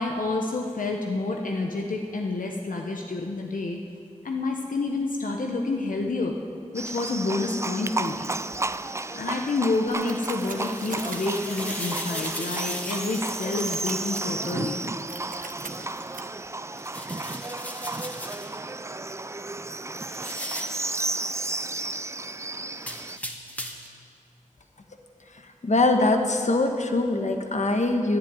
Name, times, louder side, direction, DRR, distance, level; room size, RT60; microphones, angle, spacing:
voice 1, 0.0-3.8 4.2-6.3 6.7-8.3 9.1-14.8, left 3 dB, 85° left, 1 dB, 1.1 m, -28 dB
Livestock farm animals working animals, 6.7-23.2, right 2 dB, 20° right, 0.4 m, -33 dB
sound 1, 9.9-16.2, right 3 dB, 80° right, 1.2 m, -42 dB
sound 2, 10.4-14.4 16.7-18.6 20.0-20.9 22.8-24.0, equal, 10° left, 1.5 m, -38 dB
voice 2, 25.6-28.2, left 2 dB, 60° left, 4 dB, 1.4 m, -22 dB
11.0 x 11.0 x 9.7 m, 2.2 s
wide cardioid pair, 65°, 14 cm